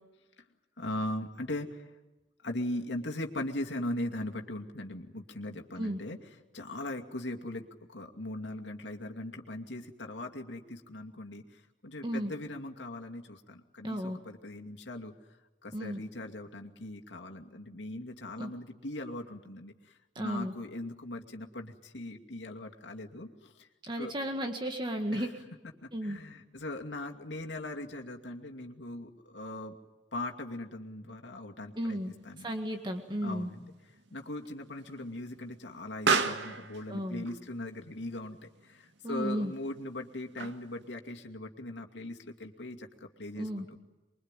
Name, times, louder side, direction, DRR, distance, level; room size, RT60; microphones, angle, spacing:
voice 1, 0.8-1.9 2.4-15.1 15.6-23.7 24.0-24.1 25.1-25.3 25.8-29.8 30.1-32.0 32.2-32.5 33.2-43.8, left 1 dB, 80° left, 3 dB, 2.5 m, -40 dB
voice 2, 13.8-14.2 15.7-16.0 18.4-18.5 20.2-20.5 23.8-25.3 25.9-26.2 31.8-32.1 32.4-33.5 36.9-37.2 39.0-39.5 43.4-43.7, equal, 25° right, 5 dB, 1.8 m, -34 dB
Explosion, 31.9-40.9, right 4 dB, 80° right, 2.1 m, -37 dB
24.5 x 23.5 x 9.1 m, 1.1 s
head